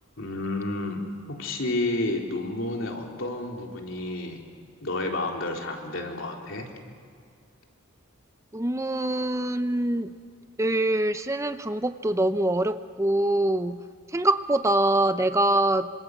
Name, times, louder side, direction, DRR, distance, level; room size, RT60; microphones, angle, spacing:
voice 1, 0.2-1.0 1.3-4.4 4.8-6.7, left 2 dB, 65° left, 1 dB, 3.9 m, -30 dB
voice 2, 8.5-10.1 10.6-13.8 14.1-15.9, right 1 dB, 15° right, 10 dB, 0.7 m, -24 dB
27.5 x 26.0 x 8.1 m, 2.2 s
head